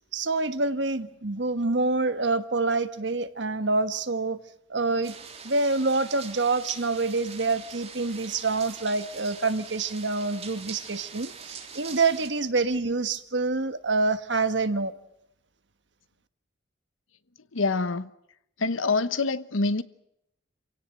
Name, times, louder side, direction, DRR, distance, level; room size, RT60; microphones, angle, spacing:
voice 1, 0.1-4.4 4.7-5.1 5.4-14.9, right 3 dB, 60° right, 1.3 m, -26 dB
sound 1, 5.0-12.3, right 6 dB, 30° right, 3.3 m, -43 dB
voice 2, 17.5-18.1 18.6-19.8, left 3 dB, 90° left, 1.0 m, -25 dB
27.0 x 17.0 x 9.0 m
head